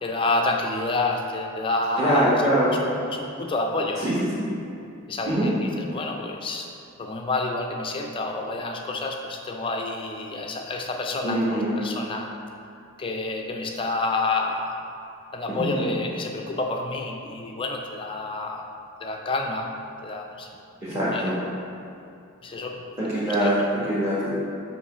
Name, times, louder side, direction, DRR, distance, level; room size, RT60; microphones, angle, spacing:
voice 1, 0.0-2.3 2.8-4.0 5.1-6.7 7.0-12.3 13.0-14.7 15.3-18.6 19.0-19.7 20.0-20.5 21.1-21.3 22.4-23.0 23.3-23.7, left 2 dB, 25° left, 1 dB, 0.4 m, -29 dB
voice 2, 2.0-2.7 4.0-4.4 5.3-5.5 11.2-11.7 15.5-15.9 20.8-21.4 23.1-23.6 23.9-24.3, right 1 dB, 15° right, -11 dB, 1.2 m, -23 dB
7.3 x 3.0 x 5.5 m, 2.5 s
head